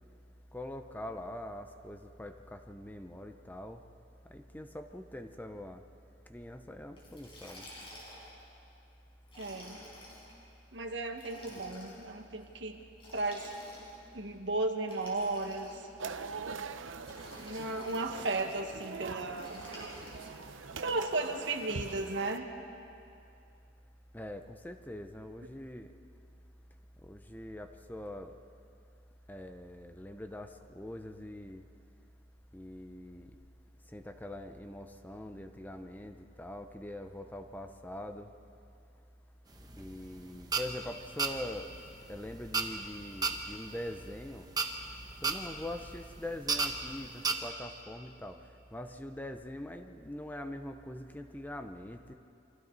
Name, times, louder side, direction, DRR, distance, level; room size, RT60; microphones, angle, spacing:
voice 1, 0.5-3.8 4.3-5.8 6.3-7.7 24.1-25.9 27.0-28.4 29.3-31.6 32.5-33.4 33.9-38.3 39.8-41.7 42.1-44.5 45.2-48.4 48.7-52.1, left 1 dB, 10° left, 6 dB, 0.7 m, -43 dB
Liquid, 7.0-8.4 9.2-10.3 11.1-12.0 13.0-14.1 14.8-16.0 17.0-18.1 19.4-20.4, equal, 30° left, 5.5 m, -50 dB
voice 2, 9.4-9.8 10.7-12.8 13.1-13.5 14.1-15.7 17.4-19.6 20.8-22.5, right 2 dB, 65° right, 4 dB, 1.7 m, -34 dB
sound 1, 16.0-22.4, right 5 dB, 85° right, 0.8 m, -43 dB
sound 2, 39.5-47.3, right 4 dB, 20° right, 1.1 m, -35 dB
28.5 x 25.0 x 4.1 m, 2.6 s
head